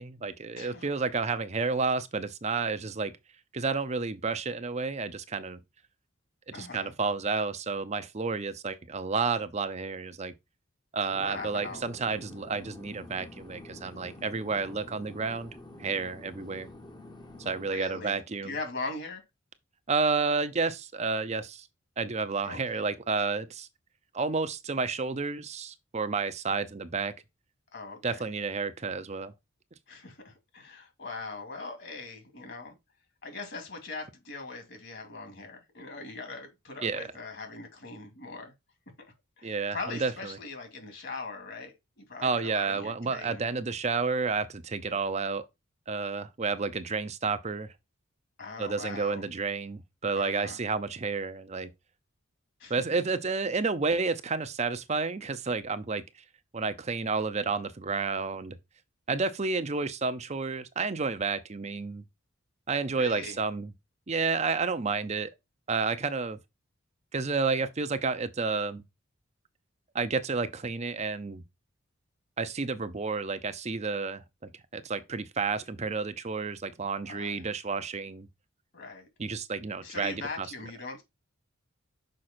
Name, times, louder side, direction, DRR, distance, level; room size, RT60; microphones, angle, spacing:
voice 1, 0.0-3.1 3.5-5.6 6.5-10.3 10.9-15.5 15.8-16.7 17.4-18.5 19.9-21.7 22.0-23.7 24.1-27.1 28.0-29.3 36.8-37.0 39.4-40.4 42.2-45.4 45.9-47.7 48.6-51.7 52.7-56.0 56.5-58.6 59.1-62.0 62.7-63.7 64.1-65.3 65.7-66.4 67.1-68.8 69.9-71.4 72.4-78.3 79.2-80.5, right 4 dB, 35° right, 0.6 m, -31 dB
voice 2, 0.5-0.9 6.5-6.9 11.2-11.9 17.6-19.2 22.4-22.6 27.7-28.3 29.9-32.7 33.2-38.5 39.0-39.1 39.4-43.4 48.4-49.3 50.1-50.6 52.6-52.7 63.0-63.4 77.0-77.4 78.7-79.1 79.8-81.0, left 3 dB, 60° left, 2.5 m, -41 dB
sound 1, 11.1-17.7, left 2 dB, 20° left, 0.9 m, -48 dB
6.4 x 4.9 x 4.3 m
head